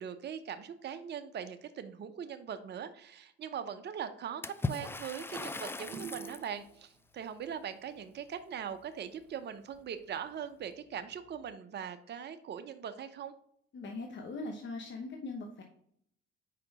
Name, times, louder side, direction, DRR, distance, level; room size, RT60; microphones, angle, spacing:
voice 1, 0.0-13.3, right 8 dB, 35° right, 9 dB, 0.7 m, -41 dB
Water / Splash splatter, 4.4-6.5, left 3 dB, 10° left, 0.3 m, -38 dB
sound 1, 5.9-6.7 8.4-8.5 8.7-8.8 9.3-9.4 9.8-9.9 10.7-11.5, right 8 dB, 60° right, 1.4 m, -46 dB
voice 2, 13.7-15.6, left 3 dB, 40° left, 3 dB, 1.0 m, -40 dB
5.0 x 4.3 x 4.8 m, 0.69 s
hypercardioid pair, 60°, 30 cm